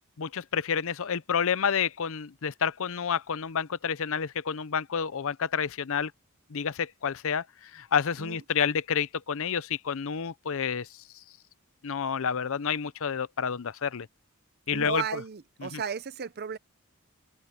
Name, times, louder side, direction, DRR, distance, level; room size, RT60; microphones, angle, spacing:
voice 1, 0.2-6.1 6.5-11.0 11.8-14.1 14.7-15.2 15.6-15.8, left 7 dB, 65° left, 0.6 m, -29 dB
voice 2, 14.7-16.6, right 6 dB, 45° right, 0.7 m, -34 dB
head